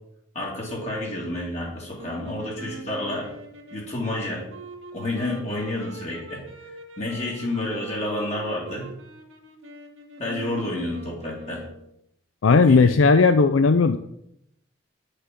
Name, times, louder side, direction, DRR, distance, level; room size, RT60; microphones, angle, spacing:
voice 1, 0.3-3.3 3.7-4.4 4.9-8.9 10.2-11.7 12.5-12.9, left 1 dB, 35° left, -4 dB, 2.7 m, -30 dB
sound 1, 1.9-11.9, right 2 dB, 80° right, 2.2 m, -43 dB
voice 2, 12.4-14.0, left 4 dB, 80° left, 10 dB, 0.5 m, -16 dB
9.9 x 6.6 x 6.0 m, 0.77 s
head